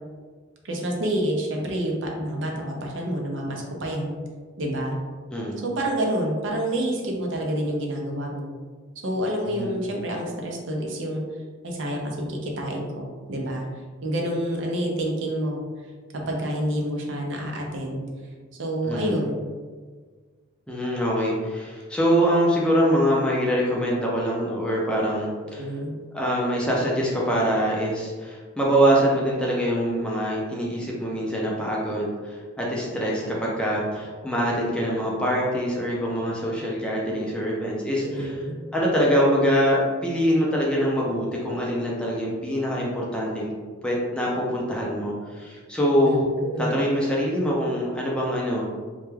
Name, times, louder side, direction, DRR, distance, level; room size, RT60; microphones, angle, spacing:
voice 1, 0.6-4.2 4.6-5.0 5.6-8.5 9.0-11.2 11.6-13.6 14.0-15.6 16.3-18.0 18.6-19.4 25.4-25.9 38.0-38.6 46.0-46.9, right 1 dB, 65° right, 0 dB, 0.5 m, -28 dB
voice 2, 9.5-9.8 18.8-19.1 20.7-25.7 26.1-38.4 38.7-43.5 43.8-46.3 46.6-48.7, equal, 5° left, -4 dB, 0.4 m, -24 dB
2.2 x 2.2 x 3.1 m, 1.5 s
head